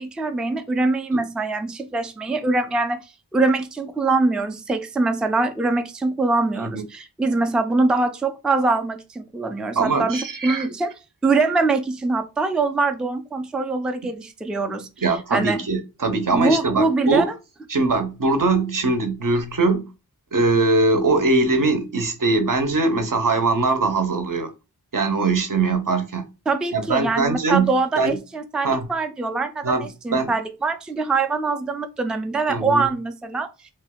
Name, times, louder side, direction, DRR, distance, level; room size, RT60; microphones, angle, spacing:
voice 1, 0.0-3.0 3.3-10.9 11.2-14.9 15.3-15.6 16.3-17.3 26.5-33.5, right 3 dB, ahead, 0.3 m, -23 dB
voice 2, 9.8-10.7 15.0-17.3 17.7-19.8 20.3-24.5 24.9-26.3 26.7-28.2 28.6-28.9 29.6-30.3 32.5-32.9, right 3 dB, 55° right, 0.6 m, -21 dB
2.6 x 2.2 x 3.5 m
wide cardioid pair, 40°, 39 cm